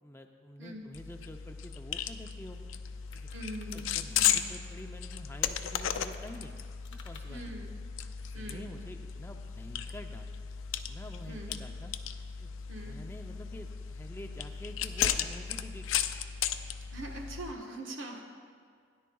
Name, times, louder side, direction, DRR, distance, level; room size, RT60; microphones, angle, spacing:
voice 1, 0.0-2.6 3.1-3.3 3.7-6.6 6.9-7.4 8.2-10.5 10.9-11.9 12.4-16.1, equal, 10° left, 4 dB, 0.5 m, -48 dB
sound 1, 0.9-17.5, left 9 dB, 85° left, 0.4 m, -35 dB
sound 2, 2.0-2.1 2.4-4.9 5.8-7.2, left 6 dB, 70° left, 0.8 m, -54 dB
voice 2, 3.3-3.8 4.2-4.4 7.3-7.7 8.3-8.7 11.3-11.5 12.7-13.0 16.9-18.2, right 1 dB, 80° right, 1 dB, 1.3 m, -42 dB
17.0 x 10.5 x 2.3 m, 2.1 s
head